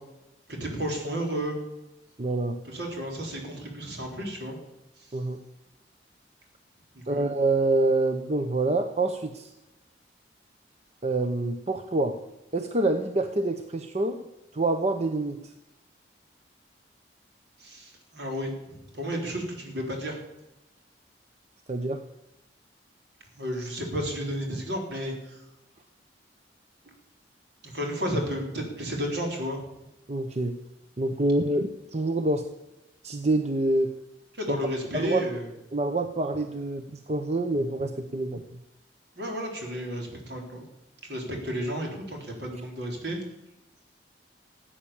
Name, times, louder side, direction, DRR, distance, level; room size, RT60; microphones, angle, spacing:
voice 1, 0.5-1.6 2.6-4.6 5.0-5.1 6.9-7.2 17.6-20.2 23.4-25.4 27.6-29.6 34.3-35.5 39.2-40.6 41.0-43.2, equal, 70° right, 2 dB, 3.7 m, -32 dB
voice 2, 2.2-2.6 5.1-5.4 7.1-9.5 11.0-12.2 12.5-14.2 14.5-15.5 21.7-22.0 30.1-30.6 31.0-32.5 33.0-33.9 34.5-34.6 34.9-35.2 35.7-38.4, right 2 dB, 40° right, 7 dB, 0.8 m, -26 dB
15.5 x 8.8 x 7.2 m, 0.94 s
head